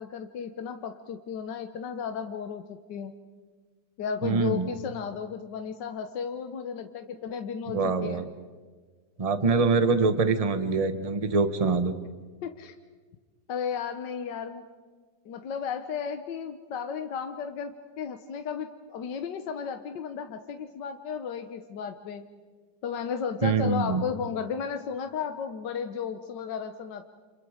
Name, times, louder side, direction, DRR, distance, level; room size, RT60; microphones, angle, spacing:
voice 1, 0.0-3.1 4.0-8.2 12.4-12.7 13.5-14.7 15.2-22.2 22.8-27.1, left 6 dB, 75° left, 7 dB, 1.6 m, -34 dB
voice 2, 4.2-4.7 7.7-8.3 9.2-11.9 23.4-24.0, right 4 dB, 25° right, 10 dB, 1.0 m, -24 dB
29.0 x 28.0 x 5.0 m, 1.5 s
omnidirectional pair, 1.9 m